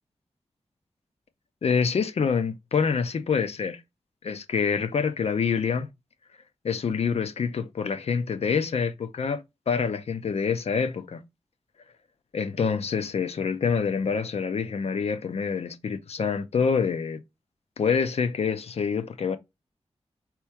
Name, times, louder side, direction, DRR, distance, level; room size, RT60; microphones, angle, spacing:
voice 1, 1.6-3.8 4.2-5.9 6.6-11.2 12.3-17.2 17.8-19.4, left 6 dB, 70° left, 0.5 m, -26 dB
4.5 x 3.0 x 3.5 m
wide cardioid pair, 70°, 11 cm